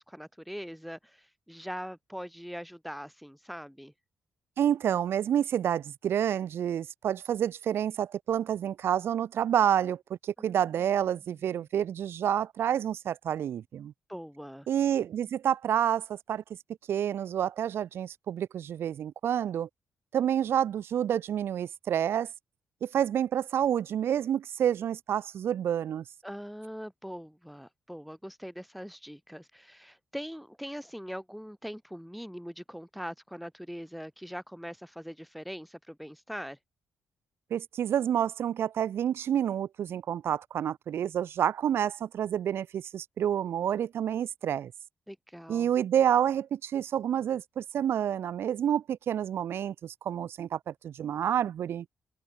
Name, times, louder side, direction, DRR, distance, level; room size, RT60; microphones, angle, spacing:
voice 1, 0.0-3.9 14.1-14.7 26.2-36.6 45.1-45.7, equal, ahead, 6.4 m, -42 dB
voice 2, 4.6-13.9 14.7-16.4 16.9-19.7 20.1-22.3 22.8-26.0 37.5-44.7 45.5-51.8, right 9 dB, 70° right, 0.9 m, -28 dB
open air
supercardioid pair, 55°, 4 cm